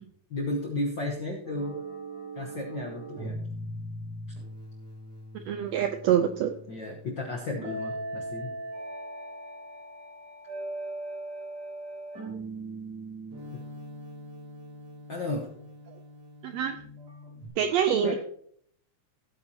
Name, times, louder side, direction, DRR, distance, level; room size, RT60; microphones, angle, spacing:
voice 1, 0.3-1.8 2.4-3.4 6.7-8.5 15.1-15.5 18.0-18.2, left 2 dB, 60° left, 0 dB, 1.2 m, -33 dB
sound 1, 1.5-17.5, right 1 dB, 60° right, 4.4 m, -40 dB
voice 2, 5.3-6.5 16.4-16.8 17.6-18.2, right 9 dB, 90° right, 8 dB, 1.5 m, -25 dB
16.0 x 8.7 x 2.8 m, 0.64 s
omnidirectional pair, 3.6 m